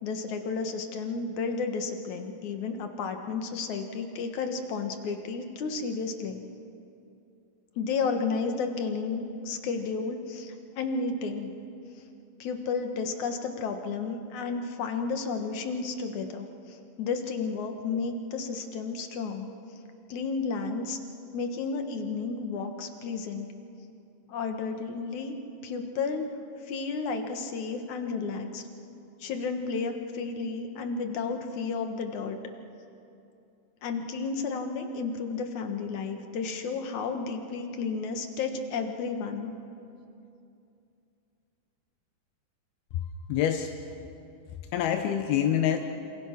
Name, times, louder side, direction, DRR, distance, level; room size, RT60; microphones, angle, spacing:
voice 1, 0.0-6.4 7.8-11.5 12.4-19.5 20.1-21.0 21.3-23.5 24.3-25.4 25.6-26.4 26.7-28.6 29.2-32.4 33.8-39.5, left 4 dB, 60° left, 5 dB, 2.5 m, -32 dB
voice 2, 42.9-43.7 44.7-45.8, left 10 dB, 85° left, 5 dB, 2.9 m, -26 dB
27.0 x 26.5 x 6.0 m, 2.7 s
omnidirectional pair, 4.3 m